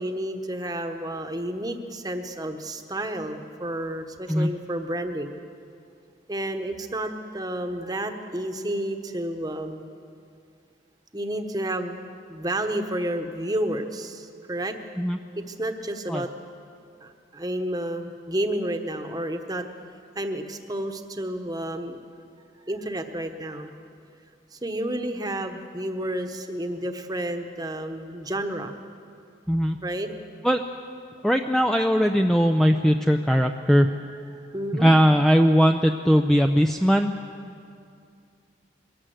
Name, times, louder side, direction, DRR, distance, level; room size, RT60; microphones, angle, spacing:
voice 1, 0.0-5.4 6.3-9.9 11.1-12.0 12.3-14.8 15.4-16.3 17.0-19.7 20.1-22.0 22.6-23.7 24.5-28.7 29.8-30.1 34.5-34.9, right 1 dB, 20° right, 6 dB, 1.1 m, -30 dB
voice 2, 31.2-33.9 34.7-37.1, equal, ahead, 4 dB, 0.5 m, -19 dB
22.5 x 17.5 x 7.8 m, 2.4 s
head